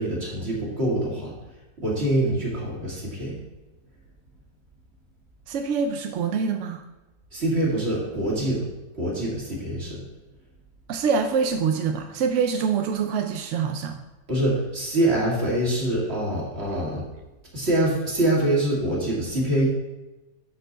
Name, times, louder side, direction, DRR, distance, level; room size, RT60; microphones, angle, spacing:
voice 1, 0.0-1.3 1.8-3.4 7.3-8.7 8.9-10.0 14.3-17.1 17.5-19.7, right 1 dB, 40° right, -4 dB, 2.4 m, -25 dB
voice 2, 5.5-6.8 10.9-14.0, right 6 dB, 70° right, 5 dB, 0.7 m, -25 dB
12.0 x 4.5 x 4.0 m, 1.1 s
omnidirectional pair, 1.8 m